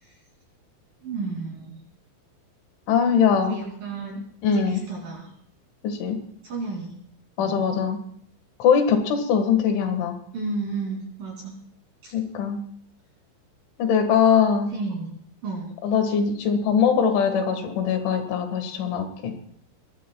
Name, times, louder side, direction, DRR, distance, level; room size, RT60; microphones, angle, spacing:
voice 1, 1.0-1.8 3.4-5.3 6.4-6.9 7.4-7.6 10.3-11.6 12.0-12.1 14.7-15.1 15.4-15.7, right 3 dB, 55° right, -2 dB, 4.2 m, -32 dB
voice 2, 2.9-3.6 4.4-4.8 5.8-6.2 7.4-8.0 8.6-10.2 12.1-12.6 13.8-14.7 15.8-19.3, left 7 dB, 85° left, 6 dB, 4.2 m, -21 dB
23.0 x 19.0 x 2.3 m, 0.63 s
omnidirectional pair, 5.3 m